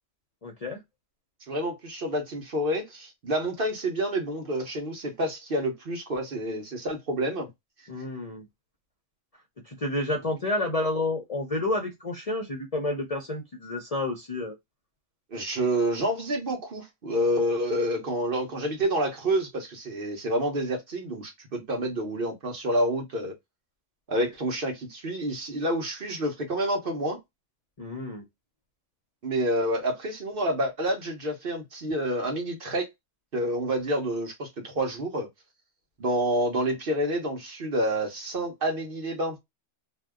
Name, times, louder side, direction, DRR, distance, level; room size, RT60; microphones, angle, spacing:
voice 1, 0.4-0.8 7.9-8.5 9.7-14.5 27.8-28.2, left 2 dB, 40° left, 0.6 m, -30 dB
voice 2, 1.5-7.5 15.3-23.3 24.1-27.2 29.2-32.9 33.3-35.3 36.0-39.4, right 1 dB, 50° right, 1.0 m, -28 dB
2.7 x 2.2 x 3.4 m
omnidirectional pair, 1.3 m